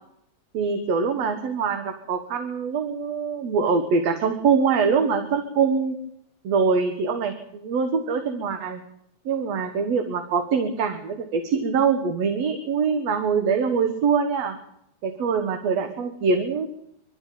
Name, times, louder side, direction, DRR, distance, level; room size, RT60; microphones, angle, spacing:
voice 1, 0.5-6.0 6.4-8.8 9.3-14.6 15.0-16.7, right 5 dB, 65° right, 7 dB, 2.7 m, -23 dB
23.0 x 13.5 x 8.8 m, 0.75 s
omnidirectional pair, 3.3 m